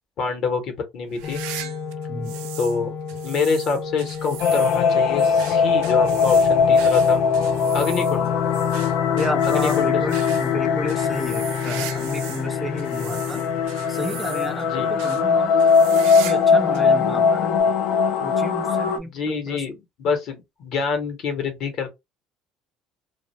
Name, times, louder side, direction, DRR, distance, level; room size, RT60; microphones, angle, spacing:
voice 1, 0.2-1.4 2.6-2.9 3.2-7.2 7.7-8.4 9.5-10.0 14.7-14.9 19.0-21.9, left 5 dB, 55° left, 1.0 m, -26 dB
sound 1, 1.1-2.8 3.1-12.5 12.8-14.6 15.0-15.2 15.6-16.5 16.7-16.8 17.6-17.7 19.0-19.1, right 12 dB, 90° right, 0.4 m, -38 dB
sound 2, 1.2-17.6, left 5 dB, 40° left, 0.6 m, -32 dB
sound 3, 4.4-19.0, left 6 dB, 75° left, 0.4 m, -20 dB
voice 2, 9.1-13.4 13.9-15.8 16.0-17.7 18.2-19.6, left 1 dB, 5° right, 0.3 m, -32 dB
2.3 x 2.2 x 3.0 m
cardioid pair, 125°, 0 cm